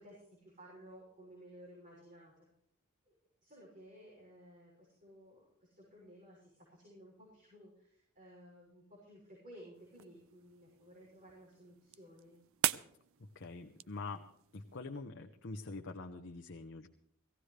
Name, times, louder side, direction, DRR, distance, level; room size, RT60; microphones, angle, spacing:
voice 1, 0.0-2.5 3.0-3.1 3.4-12.4, equal, 40° right, -5 dB, 6.7 m, -56 dB
sound 1, 9.7-14.8, right 12 dB, 65° right, 0.4 m, -42 dB
voice 2, 13.3-14.2 14.5-16.9, left 3 dB, 55° left, 4 dB, 0.8 m, -45 dB
18.0 x 16.5 x 3.3 m, 0.70 s
head